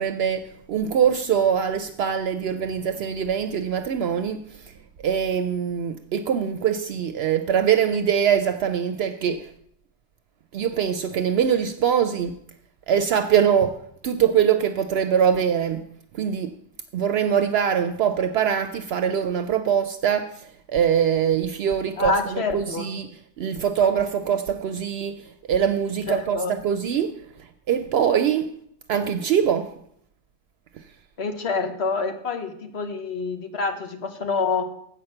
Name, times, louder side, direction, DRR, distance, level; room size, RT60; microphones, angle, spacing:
voice 1, 0.0-4.7 5.0-9.5 10.5-12.4 12.9-13.8 14.0-15.8 16.1-16.5 16.9-23.1 23.4-27.1 27.4-28.5 28.9-29.7, right 8 dB, 70° right, 8 dB, 0.8 m, -23 dB
voice 2, 22.0-22.9 26.1-26.5 31.2-34.6, left 4 dB, 70° left, 5 dB, 1.4 m, -27 dB
8.0 x 5.8 x 7.7 m, 0.69 s
omnidirectional pair, 1.1 m